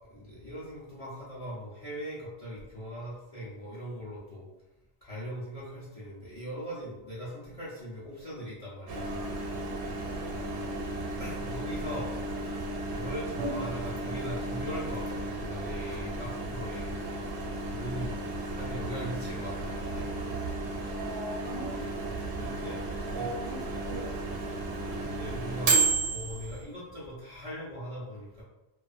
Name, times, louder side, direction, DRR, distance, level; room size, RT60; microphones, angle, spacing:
voice 1, 0.1-4.5 5.0-9.3 11.2-12.1 12.5-17.1 17.6-20.1 22.2-22.8 23.1-23.3 24.9-28.4, equal, 45° left, -7 dB, 0.4 m, -40 dB
Microwave oven, 8.9-26.6, right 2 dB, 90° right, 0.9 m, -33 dB
voice 2, 10.1-10.5 13.4-13.6 20.9-21.7 23.1-23.6 23.8-24.1, right 2 dB, 60° right, -3 dB, 0.6 m, -38 dB
2.4 x 2.3 x 2.4 m, 0.98 s
omnidirectional pair, 1.2 m